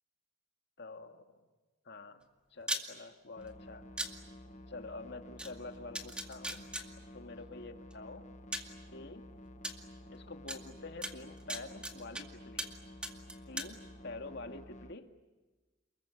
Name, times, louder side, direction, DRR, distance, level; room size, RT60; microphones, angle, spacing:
voice 1, 0.8-1.4 1.8-3.9 4.7-6.7 7.1-8.3 8.9-9.2 10.1-12.7 13.5-15.1, left 3 dB, 60° left, 5 dB, 2.1 m, -47 dB
sound 1, 2.6-2.8 4.0-4.1 5.4-5.5 5.9-6.8 7.9-8.0 8.5-8.7 9.6-9.7 10.5-10.6 11.0-12.2 12.6-12.8 13.0-13.7, right 1 dB, 5° right, 2.2 m, -37 dB
sound 2, 3.4-14.9, left 1 dB, 35° left, 1.5 m, -52 dB
29.5 x 22.0 x 8.4 m, 1.2 s
head